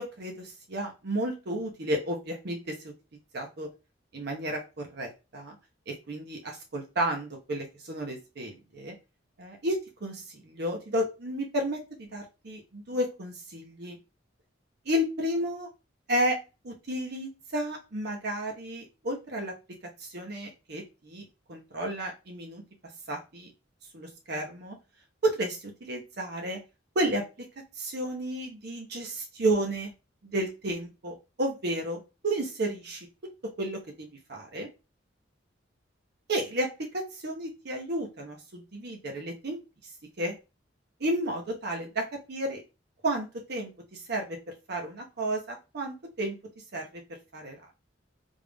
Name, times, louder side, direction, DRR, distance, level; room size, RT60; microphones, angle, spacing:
voice 1, 0.0-2.9 3.3-3.7 4.1-5.6 5.9-9.0 9.4-14.0 14.9-15.7 16.1-16.4 16.6-19.5 20.0-21.2 21.5-22.6 23.1-23.5 23.9-24.8 25.2-26.6 26.9-27.5 27.8-29.9 30.2-33.1 33.4-34.7 36.3-39.6 40.2-40.4 41.0-42.6 43.0-44.4 44.7-46.4 46.7-47.0 47.3-47.6, right 1 dB, 60° right, 2 dB, 0.8 m, -32 dB
3.6 x 2.4 x 3.3 m, 0.28 s
head